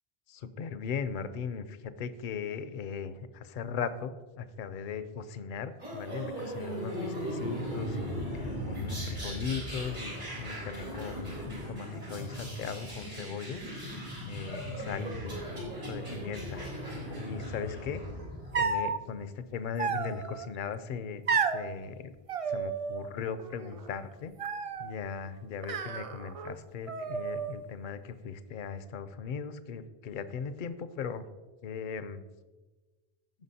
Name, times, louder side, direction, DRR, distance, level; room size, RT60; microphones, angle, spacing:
voice 1, 0.3-13.6 14.2-16.7 17.2-18.0 18.6-21.2 21.5-22.2 22.5-24.3 24.8-31.3 31.6-32.2, left 6 dB, 60° left, 12 dB, 0.7 m, -38 dB
sound 1, 5.8-18.5, equal, 80° right, 3.7 m, -38 dB
sound 2, 18.5-19.0 19.8-20.5 21.3-21.7 22.3-23.1 23.4-23.9 24.4-24.9 25.6-26.5 26.9-27.6, right 5 dB, 50° right, 0.4 m, -32 dB
16.0 x 5.7 x 2.8 m, 1.2 s
omnidirectional pair, 1.0 m